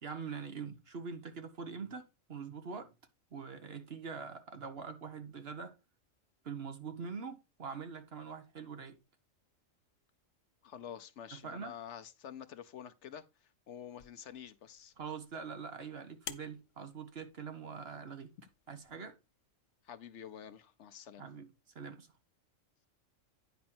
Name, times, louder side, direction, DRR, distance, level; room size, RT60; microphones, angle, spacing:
voice 1, 0.0-2.9 3.3-5.7 6.4-9.0 11.3-11.7 15.0-18.3 18.7-19.1 21.2-21.5 21.7-22.1, right 5 dB, 50° right, 1.3 m, -44 dB
voice 2, 10.6-14.9 19.8-21.2, left 9 dB, 65° left, 1.0 m, -48 dB
sound 1, 13.9-18.9, left 9 dB, 85° left, 1.2 m, -53 dB
9.6 x 5.2 x 4.3 m
omnidirectional pair, 1.4 m